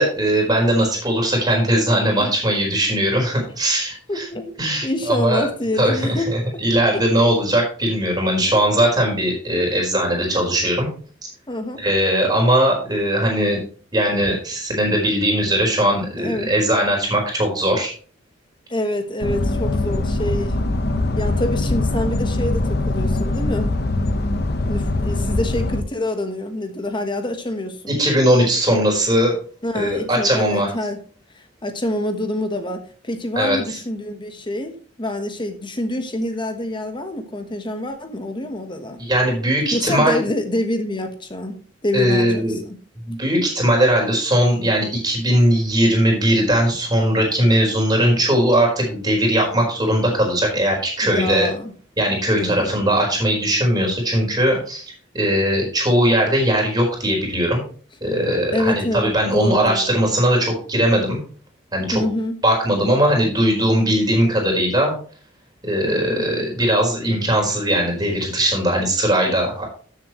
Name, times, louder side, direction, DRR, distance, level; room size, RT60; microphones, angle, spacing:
voice 1, 0.0-4.3 4.6-5.5 5.8-10.9 11.8-13.6 13.9-17.9 27.9-29.3 29.7-30.7 33.4-33.8 39.0-40.2 41.9-42.6 43.0-51.5 52.0-54.8 55.1-57.6 58.0-61.2 61.7-62.0 62.4-64.9 65.6-69.7, right 1 dB, 20° right, 4.5 m, -19 dB
voice 2, 4.1-4.5 4.8-6.6 6.9-7.0 11.5-11.8 16.2-16.5 18.7-20.6 21.2-23.8 24.7-27.9 29.6-31.0 31.3-39.0 39.7-42.8 51.0-51.7 52.4-52.9 58.5-59.8 61.9-62.4 65.8-66.2, left 1 dB, 25° left, 1.2 m, -26 dB
sound 1, 19.2-25.8, left 2 dB, 60° left, 1.1 m, -22 dB
13.0 x 7.7 x 3.1 m
head